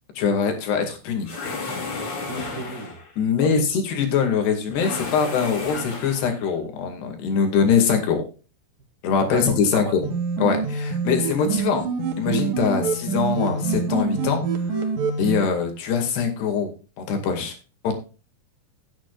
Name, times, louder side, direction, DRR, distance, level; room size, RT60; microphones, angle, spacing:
voice 1, 0.2-1.3 3.2-8.2 9.0-9.9 10.4-11.8 12.2-14.4 15.2-16.7 17.0-17.6 17.8-17.9, left 6 dB, 90° left, 4 dB, 4.3 m, -23 dB
sound 1, 1.2-3.1 4.7-6.4, left 3 dB, 40° left, 3.1 m, -32 dB
voice 2, 2.3-3.0 3.4-3.5 9.2-10.0, right 2 dB, 35° right, 1 dB, 2.1 m, -33 dB
sound 2, 10.0-15.4, right 5 dB, 60° right, 3.2 m, -26 dB
16.0 x 9.1 x 2.4 m, 0.33 s
omnidirectional pair, 4.6 m